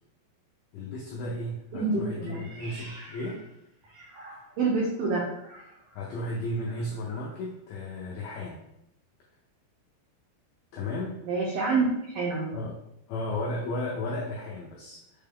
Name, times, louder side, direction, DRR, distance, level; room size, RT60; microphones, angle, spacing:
voice 1, 0.7-3.4 5.9-8.6 10.7-11.2 12.5-12.8 13.1-15.0, left 1 dB, 85° left, -4 dB, 2.0 m, -34 dB
voice 2, 1.7-2.4 4.6-5.3 11.2-11.9 12.1-12.6, right 4 dB, 90° right, -3 dB, 1.9 m, -27 dB
Meow, 2.2-4.8 5.3-7.4, right 1 dB, 75° right, 1.2 m, -49 dB
6.5 x 2.2 x 3.5 m, 0.83 s
omnidirectional pair, 5.0 m